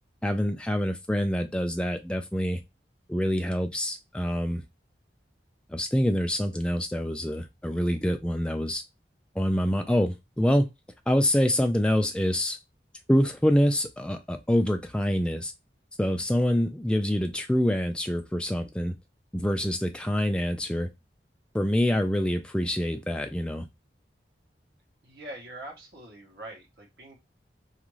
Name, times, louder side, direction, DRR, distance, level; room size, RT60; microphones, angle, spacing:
voice 1, 0.2-2.6 3.1-4.6 5.7-8.8 9.4-10.7 11.1-12.6 13.1-15.5 16.0-19.0 19.3-20.9 21.5-23.7, equal, 5° left, 0.3 m, -26 dB
voice 2, 25.0-27.2, right 1 dB, 65° right, 0.9 m, -43 dB
2.5 x 2.4 x 3.0 m
head